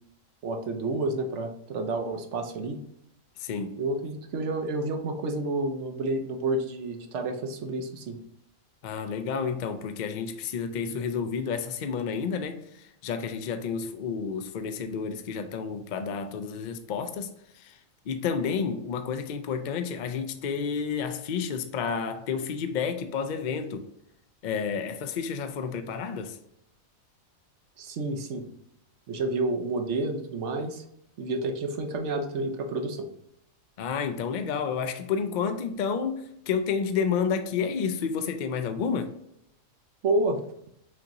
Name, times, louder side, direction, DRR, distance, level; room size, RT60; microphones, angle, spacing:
voice 1, 0.4-2.8 3.8-8.2 27.8-28.4 29.1-30.8 31.2-33.1 40.0-40.4, right 2 dB, 65° right, 1.0 m, -29 dB
voice 2, 3.4-3.9 8.8-17.8 18.1-23.9 24.4-26.4 33.8-39.1, left 6 dB, 65° left, 0.4 m, -30 dB
6.1 x 3.0 x 2.6 m
omnidirectional pair, 1.4 m